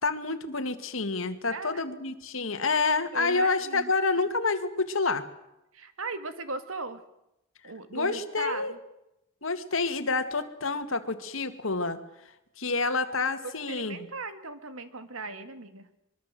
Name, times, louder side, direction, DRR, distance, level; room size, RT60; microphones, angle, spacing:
voice 1, 0.0-5.2 7.9-8.7 9.4-12.0 12.6-14.0, left 3 dB, 75° left, 9 dB, 2.1 m, -28 dB
voice 2, 1.5-1.8 3.1-3.9 5.7-7.0 7.6-8.8 10.3-10.4 13.4-15.9, right 3 dB, 85° right, 10 dB, 2.1 m, -38 dB
24.5 x 23.0 x 7.7 m, 0.88 s
head